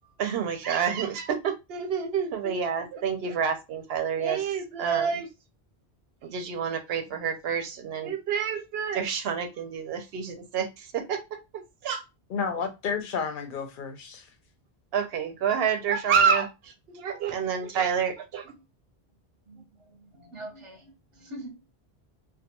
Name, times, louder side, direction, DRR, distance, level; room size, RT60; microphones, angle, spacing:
voice 1, 0.2-5.3 6.2-11.2 11.5-12.0 14.9-18.4, right 7 dB, 75° right, 0.8 m, -28 dB
voice 2, 12.3-14.3, left 6 dB, 60° left, 0.7 m, -31 dB
voice 3, 19.5-21.6, right 1 dB, 35° right, 0.7 m, -44 dB
2.3 x 2.3 x 2.8 m
omnidirectional pair, 1.1 m